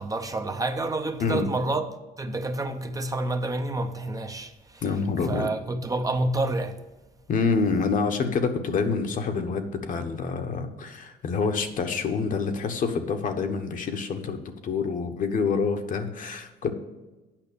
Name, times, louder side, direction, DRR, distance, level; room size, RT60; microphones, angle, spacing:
voice 1, 0.0-1.9 2.2-4.8 5.3-6.8, right 2 dB, 20° right, 0.7 m, -28 dB
voice 2, 4.8-5.5 7.3-16.7, left 5 dB, 50° left, 1.2 m, -27 dB
8.8 x 5.8 x 6.9 m
cardioid pair, 110°, 17 cm